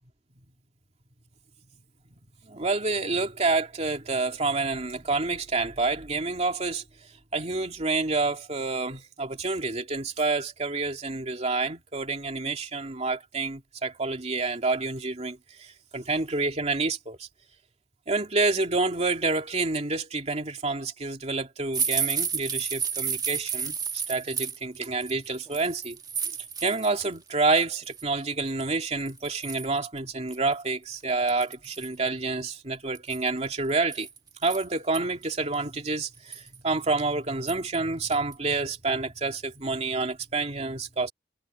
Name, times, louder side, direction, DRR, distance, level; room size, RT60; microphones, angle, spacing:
voice 1, 2.4-6.8 7.3-17.3 18.1-23.8 24.1-26.0 26.6-34.1 34.4-41.1, right 3 dB, 40° right, 2.6 m, -28 dB
sound 1, 21.7-27.1 27.4-28.0 28.6-28.7 29.1-29.8 30.3-30.4 30.7-30.8 31.3-31.9 32.9-35.0 35.5-35.6 36.0-36.6 37.5-37.8 38.1-38.3 38.7-38.8, right 6 dB, 25° right, 1.5 m, -32 dB
head